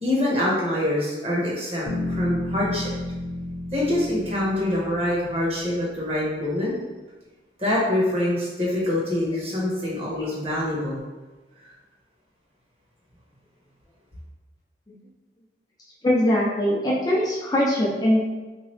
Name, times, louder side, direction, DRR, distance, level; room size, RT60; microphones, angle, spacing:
voice 1, 0.0-2.9 3.7-6.7 7.6-11.0, left 1 dB, 35° right, -6 dB, 1.1 m, -25 dB
sound 1, 1.9-5.9, left 1 dB, 85° left, 0.7 m, -32 dB
voice 2, 16.0-18.2, left 1 dB, 20° left, -5 dB, 0.4 m, -21 dB
3.5 x 2.9 x 3.2 m, 1.2 s
head